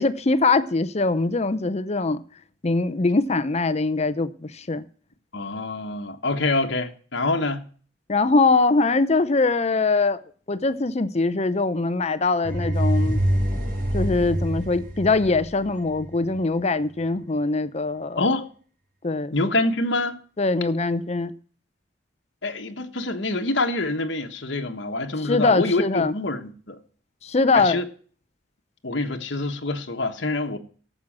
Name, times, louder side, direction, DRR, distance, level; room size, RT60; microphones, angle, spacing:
voice 1, 0.0-2.2 2.6-4.8 8.1-10.2 10.5-13.2 13.9-18.2 19.0-19.3 20.4-21.3 25.2-26.1 27.2-27.8, left 3 dB, 35° left, 0.7 m, -22 dB
voice 2, 5.3-7.6 18.2-18.4 19.3-20.2 22.4-26.8 27.5-27.8 28.8-30.6, left 2 dB, 60° left, 1.4 m, -26 dB
Factory of fear, 12.4-16.3, equal, 45° right, 6.3 m, -25 dB
12.5 x 7.6 x 7.4 m
head